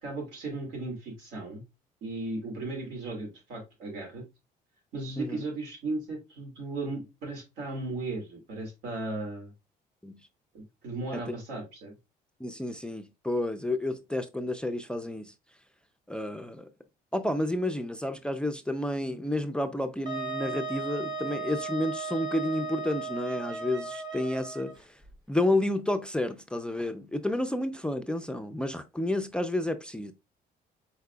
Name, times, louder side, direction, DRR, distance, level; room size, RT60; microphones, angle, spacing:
voice 1, 0.0-1.6 2.0-4.3 4.9-9.5 10.5-11.9, right 2 dB, 85° right, 2.3 m, -36 dB
voice 2, 12.4-15.3 16.1-16.7 17.1-24.9 25.3-30.1, left 1 dB, 5° left, 0.4 m, -30 dB
Wind instrument woodwind instrument, 20.1-24.7, right 3 dB, 25° right, 1.4 m, -36 dB
4.8 x 4.0 x 2.2 m
cardioid pair, 110°, 17 cm